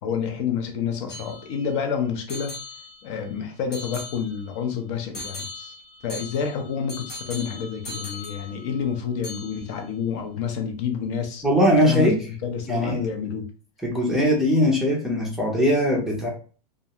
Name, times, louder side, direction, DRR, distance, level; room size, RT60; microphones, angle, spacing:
voice 1, 0.0-2.5 3.0-5.7 6.0-11.4 11.8-12.1 12.4-13.5, left 7 dB, 45° left, 0.6 m, -28 dB
sound 1, 1.1-1.8 2.3-3.3 3.7-4.6 5.1-9.0 9.2-9.9, left 3 dB, 70° left, 1.4 m, -39 dB
voice 2, 11.4-12.2 12.7-13.0 13.8-16.3, equal, ahead, 0.5 m, -20 dB
2.4 x 2.1 x 2.8 m
supercardioid pair, 155°, 21 cm